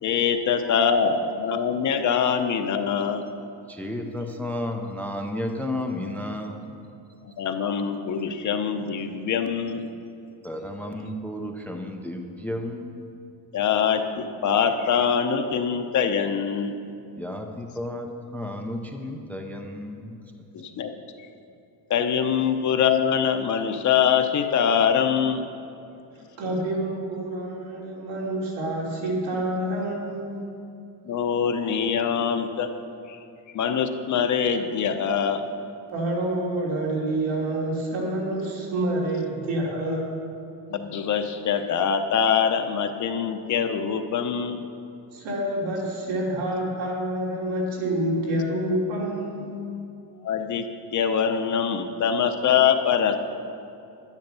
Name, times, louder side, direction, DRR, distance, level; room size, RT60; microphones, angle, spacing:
voice 1, 0.0-3.2 7.4-9.9 13.5-16.7 20.5-20.9 21.9-25.5 31.1-32.7 33.1-33.2 33.5-35.4 40.7-44.6 50.2-50.7 50.9-53.2, left 7 dB, 40° left, 7 dB, 0.7 m, -23 dB
voice 2, 3.7-6.7 10.4-13.0 17.2-20.2, left 1 dB, 5° left, 4 dB, 0.4 m, -32 dB
voice 3, 26.1-30.4 35.9-40.0 45.1-49.5, right 1 dB, 85° right, -3 dB, 3.6 m, -27 dB
10.5 x 10.5 x 6.9 m, 2.7 s
cardioid pair, 175°, 45 cm